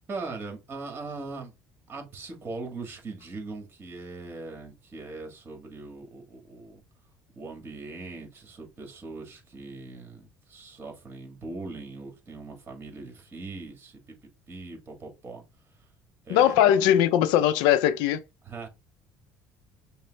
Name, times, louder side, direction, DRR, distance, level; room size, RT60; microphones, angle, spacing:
voice 1, 0.1-1.5 1.9-6.8 7.3-15.4 16.3-16.9 18.4-18.7, right 3 dB, 30° right, 1.7 m, -40 dB
voice 2, 16.3-18.2, left 11 dB, 80° left, 0.5 m, -20 dB
5.5 x 2.1 x 3.9 m
cardioid pair, 110°, 7 cm